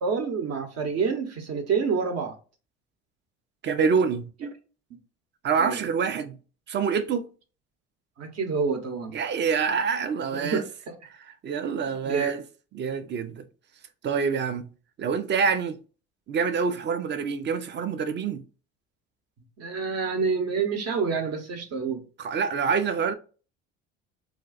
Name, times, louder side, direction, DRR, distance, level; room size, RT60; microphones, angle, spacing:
voice 1, 0.0-2.3 5.6-5.8 8.2-9.1 10.3-10.9 12.0-12.4 19.6-22.0, right 5 dB, 50° right, 0.9 m, -28 dB
voice 2, 3.6-4.3 5.4-6.4 6.7-7.3 9.1-10.6 11.1-12.4 12.7-13.4 14.0-14.7 15.0-15.8 16.3-18.4 22.2-23.1, right 6 dB, 35° right, 0.5 m, -26 dB
2.4 x 2.3 x 3.9 m
hypercardioid pair, 65°, 32 cm